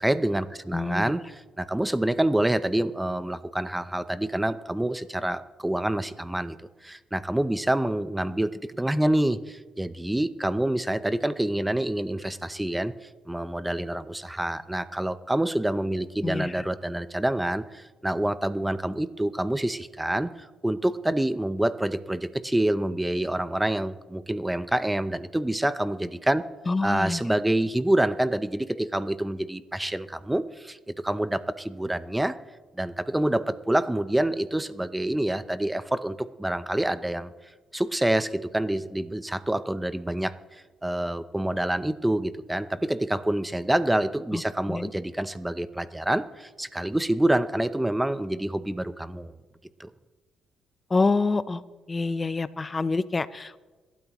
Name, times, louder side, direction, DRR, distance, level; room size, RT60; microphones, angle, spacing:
voice 1, 0.0-26.5 26.8-32.4 32.7-37.3 37.7-49.4 49.8-49.9, right 1 dB, 10° right, 13 dB, 0.7 m, -27 dB
voice 2, 0.7-1.1 16.2-16.5 26.7-27.2 44.3-44.4 44.7-44.9 50.9-51.6 51.9-53.6, left 3 dB, 25° left, 15 dB, 0.7 m, -26 dB
26.5 x 12.5 x 3.1 m, 1.3 s
cardioid pair, 90°, 0 cm